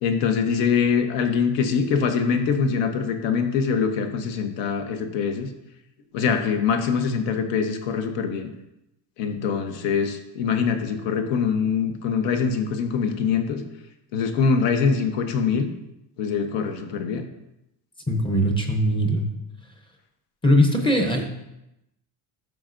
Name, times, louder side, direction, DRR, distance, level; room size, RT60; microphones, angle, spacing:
voice 1, 0.0-5.5 6.1-8.5 9.2-13.6 14.1-15.7 16.2-17.3, left 6 dB, 65° left, 6 dB, 1.1 m, -23 dB
voice 2, 18.1-19.3 20.4-21.3, equal, 10° left, 3 dB, 0.7 m, -20 dB
12.0 x 6.4 x 2.6 m, 0.88 s
cardioid pair, 165°, 47 cm